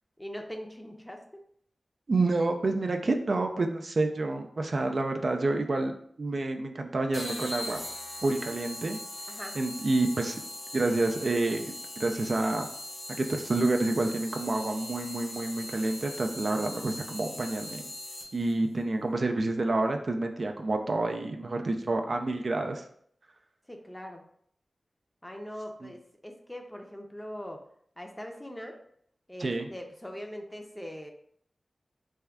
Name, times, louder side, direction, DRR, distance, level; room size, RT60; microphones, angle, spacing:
voice 1, 0.2-1.2 9.3-9.6 23.7-24.2 25.2-27.6 28.0-28.8 29.3-31.1, equal, 10° left, 3 dB, 0.5 m, -41 dB
voice 2, 2.1-7.8 8.2-9.0 9.6-10.4 10.7-12.7 13.2-17.8 18.3-22.8 25.8-25.9 29.4-29.7, right 2 dB, 55° right, 4 dB, 0.3 m, -28 dB
sound 1, 7.1-18.5, left 1 dB, 85° left, 0.8 m, -40 dB
3.4 x 2.2 x 3.4 m, 0.65 s
wide cardioid pair, 85°, 0 cm